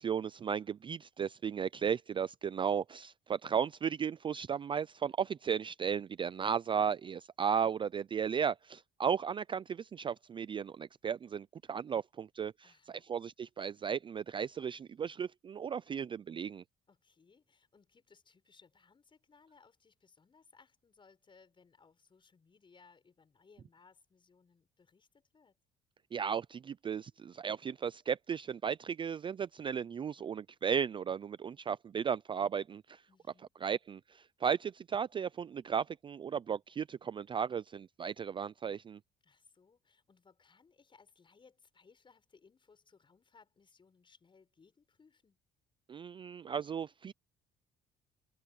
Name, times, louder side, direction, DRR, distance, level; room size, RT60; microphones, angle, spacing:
voice 1, 0.0-16.6 26.1-33.0 33.6-39.0 45.9-47.1, right 7 dB, 30° right, 0.4 m, -35 dB
voice 2, 12.6-13.0 16.9-25.6 33.1-33.5 39.2-45.4, left 5 dB, 30° left, 6.6 m, -64 dB
cardioid pair, 110°, 17 cm